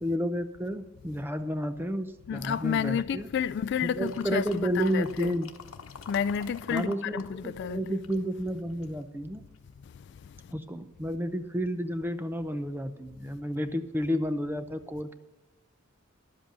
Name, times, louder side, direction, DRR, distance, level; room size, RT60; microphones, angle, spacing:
voice 1, 0.0-3.3 3.8-5.5 6.7-9.4 10.5-15.1, equal, 10° right, 0.6 m, -31 dB
voice 2, 2.3-5.3 6.1-7.9, left 8 dB, 55° left, 0.3 m, -30 dB
sound 1, 4.0-7.3 7.6-9.0 9.5-9.6, left 5 dB, 85° left, 0.9 m, -46 dB
11.5 x 7.9 x 6.7 m
head